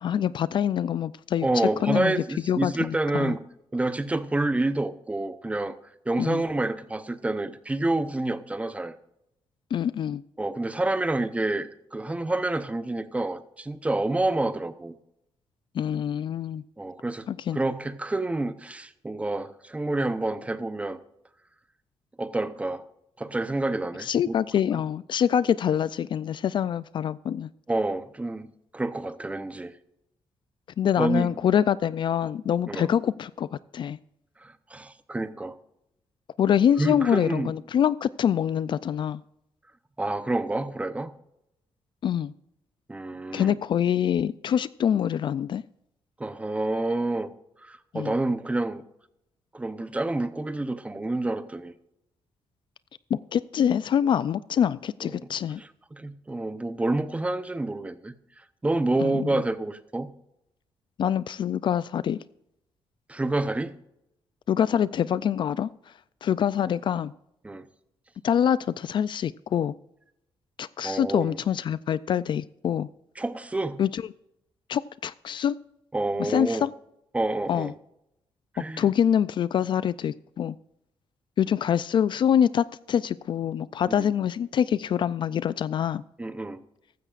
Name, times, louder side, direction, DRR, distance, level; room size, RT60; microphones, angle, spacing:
voice 1, 0.0-1.5 1.8-3.4 6.2-6.4 9.7-10.2 15.7-16.6 17.3-17.6 24.0-27.5 30.8-34.0 36.4-39.2 42.0-42.3 43.3-45.6 47.9-48.1 53.1-55.6 59.0-59.4 61.0-62.2 64.5-65.7 66.2-67.1 68.2-69.7 70.6-72.9 73.8-74.0 74.7-75.6 76.2-76.7 77.5-77.7 78.8-80.6 81.4-86.0, left 9 dB, 50° left, 0.3 m, -25 dB
voice 2, 1.4-3.4 3.7-5.8 6.1-9.0 10.4-14.9 16.8-21.0 22.2-22.8 23.2-24.3 27.7-29.7 31.0-31.3 32.7-32.9 34.4-35.6 36.8-37.5 40.0-41.1 42.9-43.6 46.2-47.3 47.6-48.8 49.5-51.7 55.0-55.1 55.6-58.1 58.6-60.1 63.1-63.8 67.4-67.7 70.8-71.4 73.2-73.8 75.9-76.7 77.1-77.7 78.5-78.8 83.9-84.1 86.2-86.6, right 2 dB, 15° right, 0.7 m, -28 dB
15.0 x 13.0 x 2.5 m
cardioid pair, 130°, 10 cm